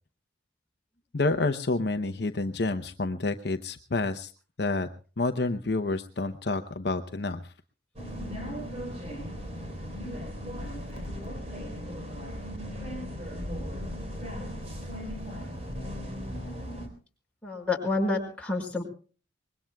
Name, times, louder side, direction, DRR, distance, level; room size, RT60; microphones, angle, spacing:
voice 1, 1.1-4.3 4.6-4.9 5.2-7.5, left 3 dB, 60° left, 8 dB, 0.8 m, -29 dB
sound 1, 8.0-16.9, equal, 35° right, 3.8 m, -37 dB
voice 2, 13.2-13.9 14.5-14.6 17.4-18.8, left 2 dB, 5° left, -2 dB, 5.4 m, -30 dB
24.5 x 21.5 x 2.3 m, 0.39 s
head